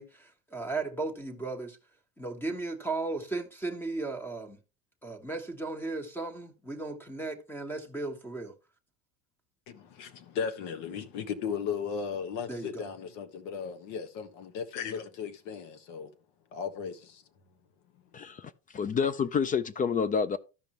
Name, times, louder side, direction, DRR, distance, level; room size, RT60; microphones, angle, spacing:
voice 1, 0.0-1.8 2.2-4.6 5.0-8.5 12.5-12.9, right 3 dB, 5° left, 1.3 m, -36 dB
voice 2, 9.7-16.1 16.5-17.2, left 6 dB, 75° left, 1.4 m, -36 dB
voice 3, 18.1-20.4, left 6 dB, 25° left, 0.4 m, -29 dB
13.5 x 5.3 x 3.0 m
supercardioid pair, 120°, 37 cm